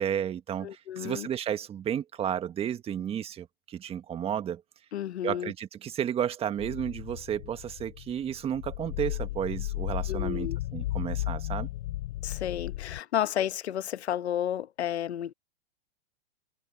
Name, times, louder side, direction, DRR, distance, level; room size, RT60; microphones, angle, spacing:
voice 1, 0.0-4.6 5.2-11.7, right 9 dB, 20° right, 1.5 m, -32 dB
voice 2, 0.6-1.3 4.9-5.5 10.1-10.6 12.2-15.3, left 11 dB, 80° left, 1.3 m, -32 dB
sound 1, 6.6-13.0, left 16 dB, 55° left, 0.9 m, -34 dB
hypercardioid pair, 145°, 32 cm